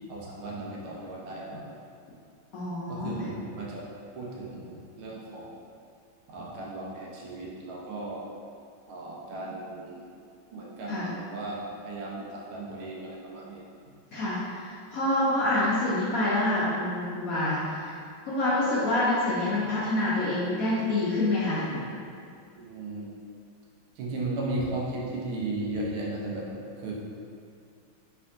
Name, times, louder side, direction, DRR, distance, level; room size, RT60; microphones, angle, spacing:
voice 1, 0.1-1.7 2.9-3.9 4.2-5.5 6.3-8.2 8.9-10.1 10.5-13.6 14.1-14.2 18.5-18.6 22.6-23.1 24.0-26.9, right 2 dB, 85° right, -4 dB, 1.6 m, -36 dB
voice 2, 2.5-3.1 10.9-11.1 14.1-17.9 18.2-21.8, left 1 dB, 70° left, -8 dB, 0.8 m, -27 dB
3.5 x 3.4 x 3.6 m, 2.3 s
omnidirectional pair, 2.3 m